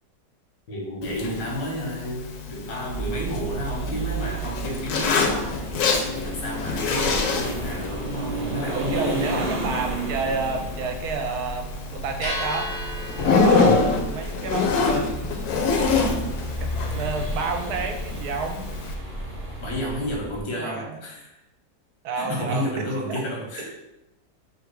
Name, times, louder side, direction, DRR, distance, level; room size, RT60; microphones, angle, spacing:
voice 1, 0.7-5.6 6.1-9.5 19.6-21.4 22.2-23.7, equal, 90° left, -2 dB, 1.8 m, -31 dB
Zipper (clothing), 1.0-18.9, left 4 dB, 70° left, 1.1 m, -27 dB
sound 1, 2.9-20.4, right 1 dB, 15° right, 0.5 m, -33 dB
voice 2, 8.7-12.7 13.1-15.5 16.6-18.7 20.5-21.0 22.0-23.2 23.6-23.7, right 4 dB, 70° right, 4 dB, 1.1 m, -30 dB
sound 2, 8.9-19.9, equal, 35° left, 0.8 m, -40 dB
3.6 x 2.8 x 4.6 m, 0.91 s
omnidirectional pair, 1.9 m